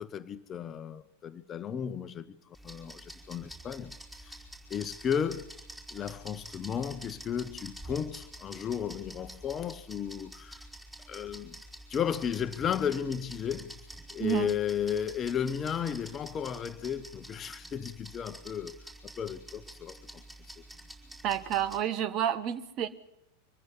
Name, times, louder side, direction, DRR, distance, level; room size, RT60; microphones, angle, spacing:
voice 1, 0.0-3.9 4.2-4.4 4.7-5.5 5.9-10.6 11.1-11.6 11.9-13.7 14.1-18.8 19.0-20.2, left 8 dB, 25° left, 1.0 m, -34 dB
sound 1, 2.5-21.8, right 1 dB, 10° right, 4.4 m, -48 dB
voice 2, 14.2-14.5 21.2-22.9, right 10 dB, 35° right, 1.3 m, -30 dB
24.5 x 15.0 x 9.9 m
figure-of-eight pair, 85°, 0 cm